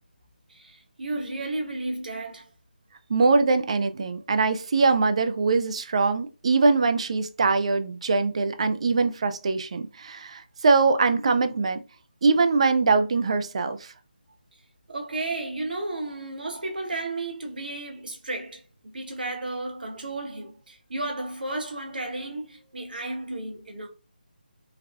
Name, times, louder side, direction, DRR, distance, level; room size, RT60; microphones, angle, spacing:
voice 1, 0.5-2.5 14.9-23.9, right 2 dB, 65° right, 0.9 m, -33 dB
voice 2, 3.1-11.8 12.2-13.9, right 4 dB, 40° right, 0.3 m, -22 dB
3.3 x 2.3 x 2.2 m
figure-of-eight pair, 155°, 5 cm